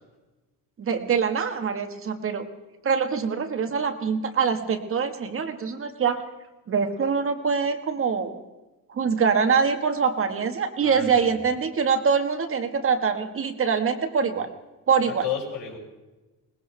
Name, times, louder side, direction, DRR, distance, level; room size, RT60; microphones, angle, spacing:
voice 1, 0.8-2.5 2.8-6.2 6.7-8.4 8.9-14.5 14.9-15.2, right 6 dB, 35° right, 7 dB, 1.4 m, -24 dB
voice 2, 10.8-11.2 15.0-15.8, left 8 dB, 90° left, -2 dB, 6.4 m, -32 dB
22.0 x 19.5 x 3.3 m, 1.1 s
cardioid pair, 130°, 36 cm